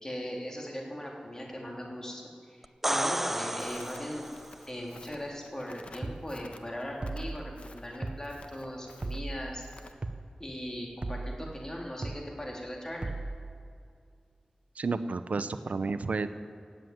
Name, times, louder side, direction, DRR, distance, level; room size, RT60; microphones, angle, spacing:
voice 1, 0.0-4.3 4.7-9.6 10.4-13.1, equal, 25° left, -1 dB, 3.3 m, -39 dB
sound 1, 2.6-4.6 8.3-8.4, right 1 dB, 10° right, 0.4 m, -32 dB
Crackle, 3.6-9.9, left 2 dB, 55° left, 1.1 m, -53 dB
sound 2, 6.0-6.3 7.0-7.4 8.0-8.3 9.0-9.4 10.0-10.3 11.0-11.4 12.0-12.3 13.0-13.4, right 2 dB, 45° right, 0.7 m, -36 dB
voice 2, 14.8-16.3, right 4 dB, 80° right, 11 dB, 0.6 m, -31 dB
17.0 x 7.9 x 9.4 m, 2.3 s
wide cardioid pair, 70°, 2 cm